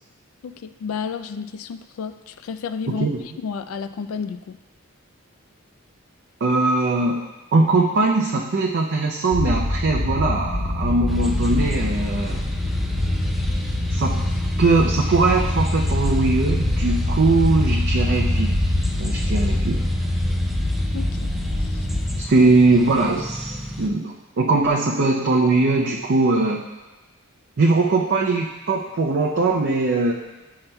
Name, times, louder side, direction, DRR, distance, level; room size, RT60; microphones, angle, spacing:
voice 1, 0.4-3.1 3.4-4.6 20.9-21.3 21.6-21.9 22.4-22.5, left 6 dB, 70° left, 11 dB, 0.3 m, -31 dB
voice 2, 2.9-3.2 6.4-7.2 7.5-12.4 13.9-14.2 14.6-18.6 19.0-19.8 22.2-26.6 27.6-30.1, right 3 dB, 55° right, -1 dB, 0.5 m, -20 dB
sound 1, 9.3-22.2, left 1 dB, 30° right, 1.2 m, -23 dB
sound 2, 11.1-23.9, equal, ahead, 0.4 m, -33 dB
10.5 x 5.6 x 2.2 m, 1.1 s
head